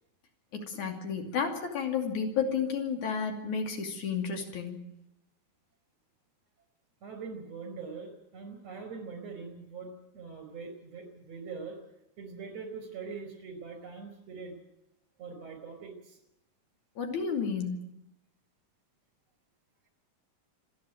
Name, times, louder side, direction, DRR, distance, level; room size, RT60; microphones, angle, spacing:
voice 1, 0.5-4.9 17.0-17.8, left 6 dB, 80° left, 4 dB, 4.1 m, -32 dB
voice 2, 7.0-11.8 12.2-14.6 15.2-16.2, right 5 dB, 60° right, 6 dB, 5.9 m, -42 dB
26.5 x 10.5 x 9.3 m, 0.87 s
omnidirectional pair, 3.4 m